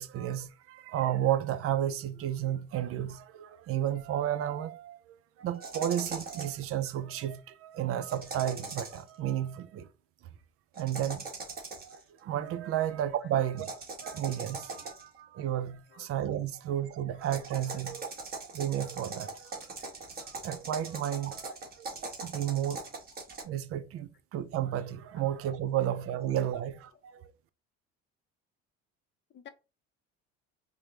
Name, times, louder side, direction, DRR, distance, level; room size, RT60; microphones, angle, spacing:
voice 1, 0.0-9.9 10.8-11.3 11.9-13.7 14.0-18.1 18.5-19.5 20.4-22.8 23.4-27.3, right 11 dB, 50° right, 0.4 m, -32 dB
sound 1, 5.6-6.6 8.1-9.1 10.7-12.0 13.6-15.2 17.2-23.4, right 3 dB, 30° right, 1.4 m, -41 dB
voice 2, 13.2-13.5 15.9-16.1 17.7-17.8 21.4-21.6 22.8-23.0 26.9-27.0 29.3-29.5, left 8 dB, 40° left, 0.6 m, -52 dB
4.9 x 2.1 x 3.1 m
cardioid pair, 110°, 29 cm